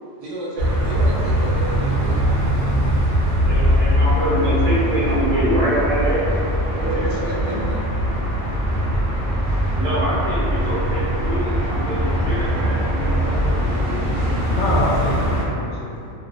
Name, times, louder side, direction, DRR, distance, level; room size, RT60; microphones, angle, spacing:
voice 1, 0.2-2.3 6.7-7.8, right 2 dB, 85° right, -7 dB, 0.9 m, -31 dB
sound 1, 0.6-15.4, equal, 60° right, 0.7 m, -21 dB
voice 2, 3.4-6.4 9.8-14.1, right 1 dB, 10° right, -12 dB, 0.7 m, -25 dB
voice 3, 6.9-7.6 14.4-16.1, left 1 dB, 80° left, -5 dB, 0.9 m, -27 dB
2.3 x 2.1 x 2.4 m, 2.6 s
omnidirectional pair, 1.2 m